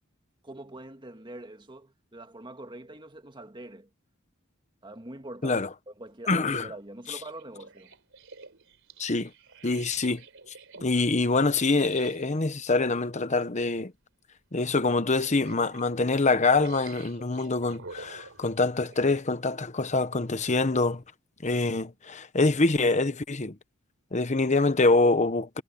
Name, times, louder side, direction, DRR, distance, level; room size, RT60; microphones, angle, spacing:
voice 1, 0.4-3.9 4.8-5.6 5.9-7.9, right 1 dB, 25° right, 1.9 m, -44 dB
voice 2, 6.3-6.7 9.0-9.3 9.6-10.2 10.8-13.9 14.5-21.0 21.4-23.6 24.1-25.6, left 3 dB, 35° left, 1.0 m, -25 dB
sound 1, 7.1-12.4 13.4-13.6 14.0-14.1 14.9-15.9 16.5-19.2 19.8-19.9, right 4 dB, 65° right, 4.3 m, -48 dB
head